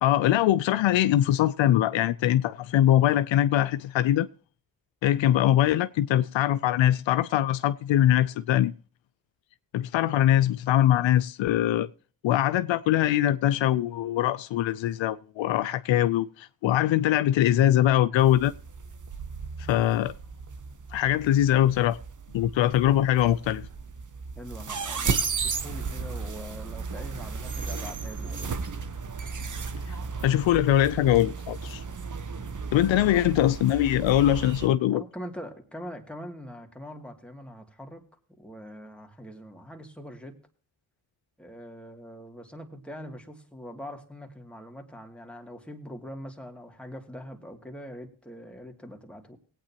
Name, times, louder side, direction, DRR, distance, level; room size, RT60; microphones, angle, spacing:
voice 1, 0.0-4.3 5.0-8.7 9.7-11.9 12.2-18.5 19.7-20.1 20.9-22.0 22.3-23.7 29.9-30.0 30.2-31.8 32.7-35.0, left 12 dB, 75° left, 0.6 m, -22 dB
sound 1, 18.2-34.7, right 5 dB, 40° right, 1.0 m, -35 dB
voice 2, 24.4-28.5 33.0-33.3 34.9-38.1 38.4-40.4 41.4-49.4, equal, ahead, 2.4 m, -43 dB
18.5 x 9.0 x 2.9 m
supercardioid pair, 40°, 46 cm